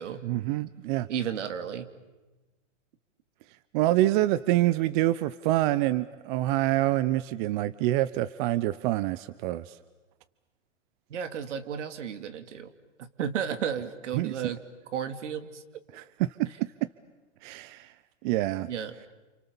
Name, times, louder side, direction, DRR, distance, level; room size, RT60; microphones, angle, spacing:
voice 1, 0.2-1.1 3.7-9.8 14.1-14.4 15.9-16.4 17.4-17.9 18.2-18.7, right 15 dB, 40° right, 15 dB, 0.8 m, -26 dB
voice 2, 1.1-1.9 11.1-12.7 13.2-14.6 14.9-15.6 18.7-18.9, right 8 dB, 75° right, 9 dB, 2.8 m, -33 dB
29.5 x 28.0 x 7.1 m, 1.2 s
hypercardioid pair, 130°, 37 cm